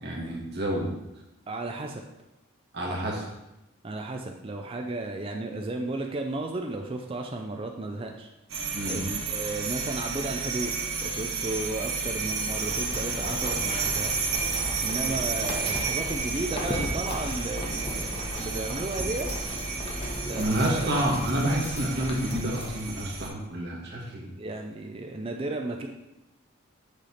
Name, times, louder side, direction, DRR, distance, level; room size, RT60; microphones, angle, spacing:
voice 1, 0.0-0.9 2.7-3.3 8.7-9.0 20.3-24.3, right 1 dB, 50° right, -2 dB, 1.4 m, -29 dB
voice 2, 1.5-2.0 3.8-8.3 8.9-10.7 11.0-14.3 14.8-19.3 20.2-21.1 24.4-25.9, right 2 dB, 25° right, 3 dB, 0.4 m, -34 dB
sound 1, 8.5-23.3, right 4 dB, 80° right, 1.1 m, -32 dB
sound 2, 12.4-22.7, left 1 dB, 25° left, 0.9 m, -36 dB
6.5 x 3.3 x 5.6 m, 0.93 s
head